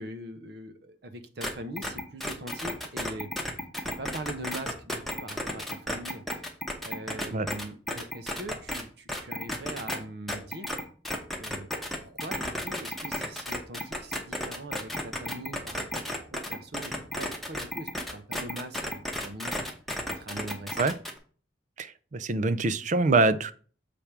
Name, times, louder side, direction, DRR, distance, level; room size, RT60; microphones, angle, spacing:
voice 1, 0.0-3.3 3.8-6.2 6.8-10.7 11.4-19.5 20.1-20.8, right 1 dB, 60° right, 8 dB, 0.9 m, -42 dB
sound 1, 1.4-1.5 1.8-8.8 9.1-10.0 10.3-21.2, left 1 dB, ahead, 1.0 m, -33 dB
voice 2, 21.8-23.5, right 3 dB, 45° right, 13 dB, 0.5 m, -25 dB
7.0 x 3.4 x 5.9 m, 0.42 s
head